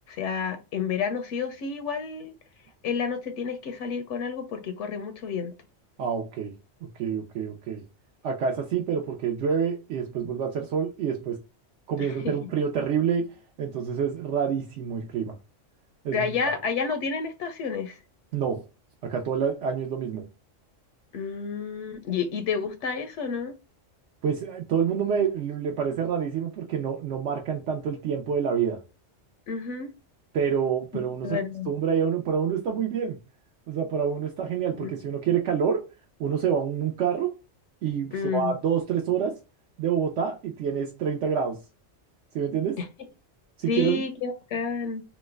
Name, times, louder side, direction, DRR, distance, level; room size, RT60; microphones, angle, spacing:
voice 1, 0.1-2.3 2.8-5.5 12.0-12.5 16.1-18.0 21.1-23.5 29.5-29.9 31.2-31.7 34.8-34.9 38.1-38.5 42.8-42.9 43.7-45.0, left 5 dB, 75° left, 0.9 m, -30 dB
voice 2, 6.0-6.5 6.8-7.8 8.2-11.4 11.9-15.4 16.0-16.3 18.3-18.6 19.0-20.2 24.2-28.8 30.3-31.4 31.7-33.2 33.7-35.9 36.2-37.3 37.8-39.4 39.8-41.6 42.3-42.8 43.6-44.0, right 7 dB, 70° right, 0.9 m, -27 dB
3.1 x 2.1 x 3.3 m
omnidirectional pair, 1.3 m